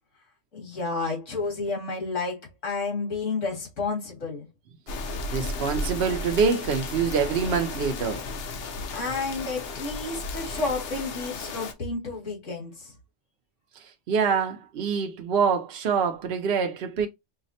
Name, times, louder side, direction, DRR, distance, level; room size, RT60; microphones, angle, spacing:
voice 1, 0.5-4.5 8.9-12.9, left 3 dB, 80° left, 2.2 m, -31 dB
sound 1, 4.9-11.7, left 3 dB, 60° left, 0.8 m, -34 dB
voice 2, 5.3-8.3 13.7-17.1, right 6 dB, 60° right, 0.8 m, -25 dB
5.5 x 2.1 x 2.6 m
omnidirectional pair, 1.3 m